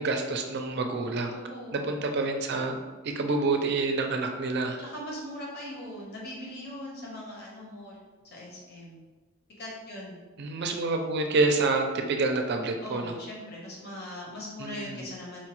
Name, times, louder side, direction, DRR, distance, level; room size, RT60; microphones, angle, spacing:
voice 1, 0.0-1.4 1.7-2.7 3.0-4.8 10.4-13.1 14.6-15.1, right 3 dB, 55° right, 4 dB, 0.4 m, -28 dB
voice 2, 1.3-2.0 4.8-8.0 8.3-9.0 9.6-10.2 12.8-15.5, left 1 dB, 55° left, -4 dB, 1.0 m, -40 dB
4.3 x 2.3 x 3.0 m, 1.3 s
head